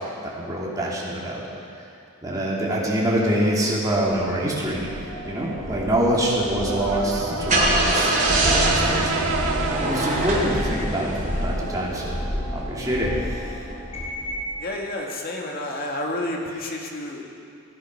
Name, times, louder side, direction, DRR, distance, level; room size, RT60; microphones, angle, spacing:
voice 1, 0.2-1.4 1.8-1.9 2.2-4.9 5.2-9.4 9.8-12.2 12.5-13.4, right 1 dB, 20° right, -5 dB, 2.7 m, -25 dB
sound 1, 4.0-14.5, equal, 30° left, 3.3 m, -31 dB
Brass instrument, 6.6-10.7, right 5 dB, 75° right, 0.7 m, -29 dB
Car / Engine starting, 7.1-11.8, right 1 dB, 40° right, 3.4 m, -24 dB
voice 2, 14.6-17.3, left 1 dB, 50° left, 0 dB, 1.8 m, -30 dB
17.0 x 10.5 x 5.5 m, 2.5 s
head